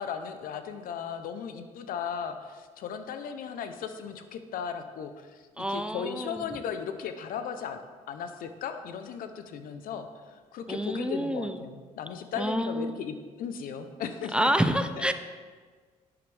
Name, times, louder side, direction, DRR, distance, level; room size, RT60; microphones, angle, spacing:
voice 1, 0.0-7.8 8.1-14.5 15.0-15.1, left 7 dB, 75° left, 8 dB, 0.8 m, -36 dB
voice 2, 5.6-6.5 10.7-11.6 12.4-12.9 14.3-15.1, right 1 dB, 5° right, 9 dB, 0.6 m, -28 dB
10.5 x 8.8 x 3.5 m, 1.5 s
supercardioid pair, 70°, 15 cm